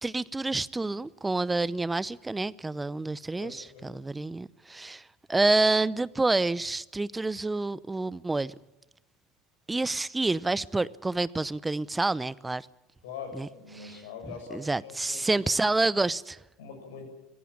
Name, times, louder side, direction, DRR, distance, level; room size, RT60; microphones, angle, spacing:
voice 1, 0.0-8.5 9.7-12.7 13.3-13.5 13.8-14.0 14.5-16.4, right 2 dB, 10° right, 0.7 m, -28 dB
voice 2, 3.4-3.9 13.0-15.4 16.6-17.1, left 6 dB, 70° left, 7.4 m, -43 dB
25.5 x 16.0 x 8.8 m
hypercardioid pair, 80°, 0 cm